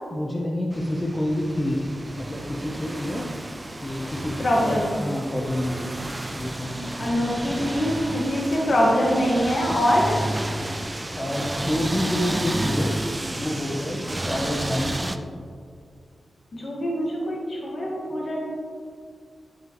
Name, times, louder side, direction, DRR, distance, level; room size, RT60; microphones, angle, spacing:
voice 1, 0.1-1.9 2.2-3.3 3.8-4.3 4.6-5.9 6.3-7.1 11.2-13.0 13.3-15.1, left 1 dB, 25° left, -3 dB, 0.7 m, -28 dB
sound 1, 0.7-15.2, right 1 dB, 15° right, 0.4 m, -31 dB
voice 2, 4.4-4.9 7.0-10.2 16.5-18.4, equal, 55° left, -3 dB, 1.4 m, -23 dB
9.2 x 6.1 x 3.0 m, 2.2 s
wide cardioid pair, 115°, 0 cm